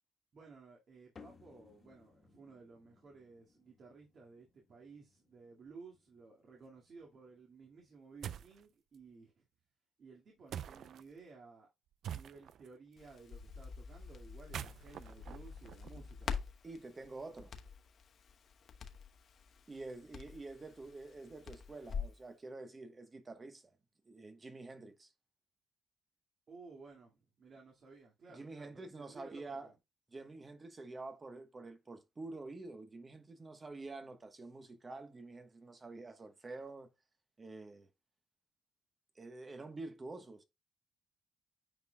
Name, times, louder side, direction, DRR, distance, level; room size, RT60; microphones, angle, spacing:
voice 1, 0.3-9.5 10.0-11.7 12.0-16.3 26.5-29.7, right 4 dB, 55° right, 2.1 m, -56 dB
sound 1, 1.2-7.9, left 5 dB, 40° left, 1.6 m, -63 dB
sound 2, 8.2-8.6 10.5-11.0 12.0-12.7 14.3-16.3, right 9 dB, 70° right, 0.4 m, -45 dB
Crackle, 13.0-22.2, left 6 dB, 55° left, 1.0 m, -46 dB
voice 2, 16.6-17.5 19.7-23.7 24.1-25.1 28.3-29.7 30.1-36.9 37.4-37.9 39.1-40.4, right 3 dB, 30° right, 1.1 m, -48 dB
9.1 x 4.6 x 2.3 m
cardioid pair, 90°, 0 cm